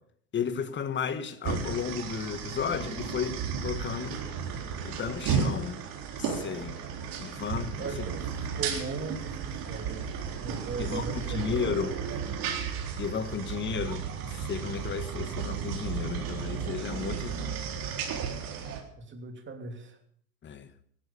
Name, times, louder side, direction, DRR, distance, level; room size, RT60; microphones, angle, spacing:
voice 1, 0.3-4.2 4.8-5.8 6.2-6.8 7.2-7.9 10.8-12.0 13.0-17.5 20.4-20.7, left 7 dB, 25° left, 1.3 m, -33 dB
sound 1, 1.4-18.8, right 6 dB, 45° right, 3.9 m, -34 dB
voice 2, 7.8-12.3 19.0-20.0, right 4 dB, 25° right, 3.0 m, -39 dB
16.5 x 12.0 x 6.8 m
hypercardioid pair, 110°, 47 cm